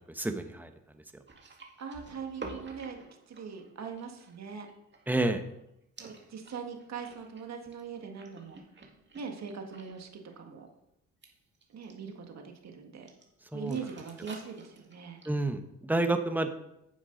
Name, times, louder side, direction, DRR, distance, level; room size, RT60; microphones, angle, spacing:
voice 1, 0.2-0.7 5.1-5.4 13.5-13.8 15.3-16.5, right 2 dB, 5° right, 7 dB, 1.1 m, -29 dB
sound 1, 1.3-5.6 6.0-10.1 10.3-10.6 11.2-12.1 13.1-13.2 13.5-15.4, right 3 dB, 35° right, 2.1 m, -50 dB
voice 2, 1.8-3.0 3.3-4.7 6.0-8.6 9.2-10.7 11.7-13.1 13.5-15.2, right 6 dB, 55° right, 4 dB, 1.8 m, -41 dB
10.5 x 7.1 x 3.9 m, 0.82 s
supercardioid pair, 65°, 32 cm